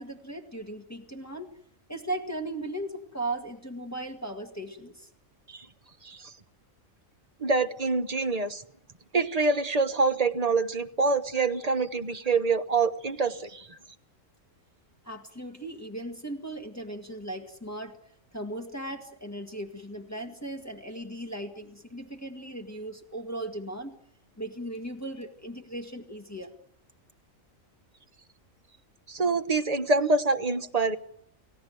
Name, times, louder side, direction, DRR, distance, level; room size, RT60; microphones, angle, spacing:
voice 1, 0.0-1.5 1.9-5.1 15.0-18.0 18.3-23.9 24.4-26.5, right 1 dB, 10° left, 4 dB, 1.9 m, -37 dB
voice 2, 7.4-8.6 9.1-13.7 29.1-31.0, right 3 dB, 30° right, 8 dB, 1.2 m, -26 dB
29.5 x 16.0 x 7.8 m, 0.73 s
omnidirectional pair, 1.4 m